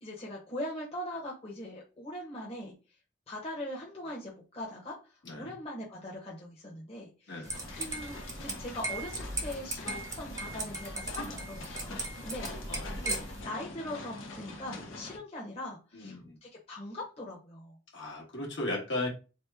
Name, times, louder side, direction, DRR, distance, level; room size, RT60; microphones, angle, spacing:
voice 1, 0.0-2.7 3.3-4.9 5.3-12.0 12.2-12.5 13.0-13.2 13.4-17.8, left 1 dB, 30° left, -3 dB, 0.9 m, -41 dB
sound 1, 7.4-13.4, right 2 dB, 15° right, 0.5 m, -38 dB
sound 2, 7.5-15.2, left 2 dB, 85° left, 0.6 m, -44 dB
voice 2, 12.7-13.0 15.9-16.4 17.9-19.1, left 2 dB, 70° left, -2 dB, 1.2 m, -36 dB
2.9 x 2.1 x 3.3 m, 0.31 s
head